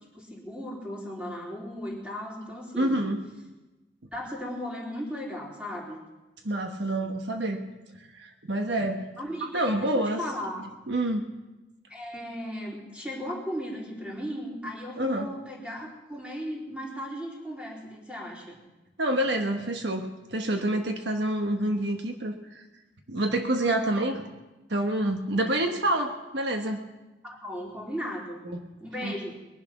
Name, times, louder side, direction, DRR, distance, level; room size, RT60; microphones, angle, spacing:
voice 1, 0.1-3.0 4.1-6.0 9.2-9.6 9.9-10.6 11.9-18.6 27.2-28.4 28.8-29.3, equal, 5° right, -3 dB, 3.5 m, -36 dB
voice 2, 2.8-3.2 6.4-7.6 8.1-9.1 9.5-10.2 10.9-11.2 15.0-15.3 19.0-22.6 23.1-24.2 24.7-26.8 28.4-28.6 29.0-29.1, right 1 dB, 70° right, 4 dB, 1.2 m, -27 dB
21.0 x 11.0 x 6.0 m, 1.1 s
head